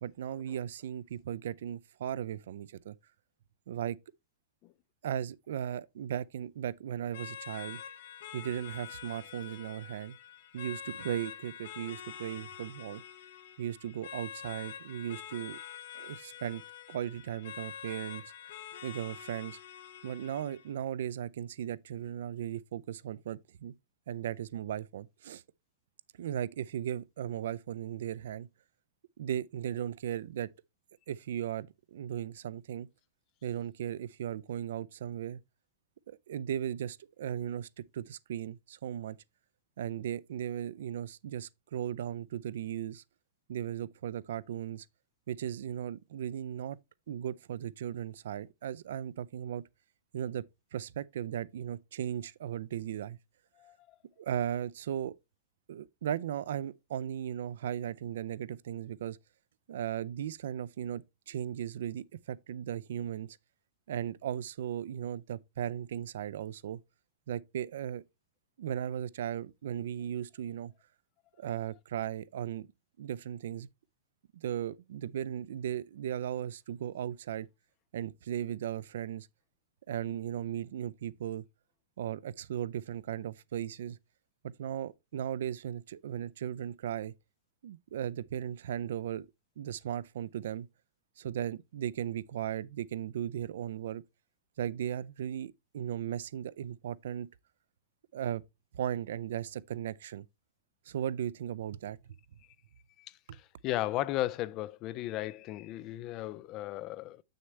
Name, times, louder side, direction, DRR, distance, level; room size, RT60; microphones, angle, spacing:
voice 1, 0.0-3.0 3.7-4.0 5.0-7.8 8.3-10.2 10.5-13.0 13.6-15.6 15.9-16.6 16.9-18.2 18.8-19.6 20.0-23.7 24.1-25.4 26.2-28.5 29.2-30.5 31.1-32.9 33.4-35.4 36.1-37.7 37.9-39.2 39.8-43.0 43.5-44.9 45.3-46.8 47.1-49.6 50.1-50.4 50.7-53.2 54.2-55.1 55.7-59.2 59.7-63.4 63.9-66.8 67.3-68.0 68.6-70.7 71.4-72.7 73.0-73.7 74.3-77.5 77.9-79.3 79.9-81.4 82.0-84.0 84.4-87.1 87.6-89.3 89.6-90.7 91.2-94.0 94.6-97.3 98.1-98.4 98.7-100.3 100.9-102.0 103.3-103.4, right 10 dB, 70° right, 0.4 m, -37 dB
sound 1, 7.1-20.7, left 9 dB, 55° left, 1.0 m, -46 dB
voice 2, 103.6-107.2, left 15 dB, 25° left, 0.3 m, -35 dB
8.0 x 6.4 x 3.2 m
supercardioid pair, 175°, 0 cm